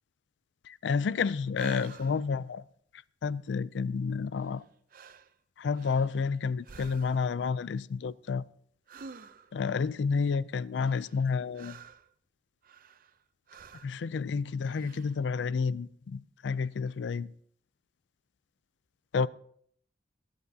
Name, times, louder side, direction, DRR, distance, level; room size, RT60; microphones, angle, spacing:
voice 1, 0.7-2.6 3.2-4.6 5.6-8.4 9.5-11.8 13.8-17.3 19.1-19.3, left 5 dB, 70° left, 0.4 m, -30 dB
sound 1, 1.6-2.3 4.4-4.6 4.9-5.3 5.7-6.3 6.6-7.4 8.9-9.6 10.8-12.1 12.6-13.2 13.5-14.0 14.6-15.2, right 5 dB, 50° right, 0.5 m, -49 dB
21.5 x 10.5 x 2.8 m
head